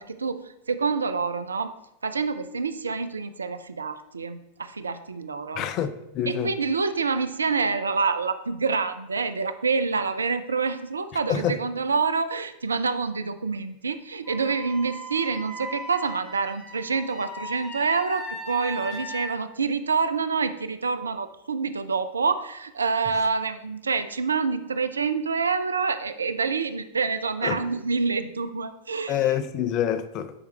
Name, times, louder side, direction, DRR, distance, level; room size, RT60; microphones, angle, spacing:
voice 1, 0.0-1.7 2.0-5.7 6.3-29.4, right 4 dB, 75° right, 0.4 m, -27 dB
voice 2, 5.6-6.5 11.3-11.6 27.4-27.6 29.1-30.3, left 9 dB, 35° left, 0.5 m, -26 dB
Wind instrument woodwind instrument, 14.2-19.3, equal, 5° left, 1.6 m, -38 dB
9.7 x 4.8 x 3.2 m
figure-of-eight pair, 90°, 0 cm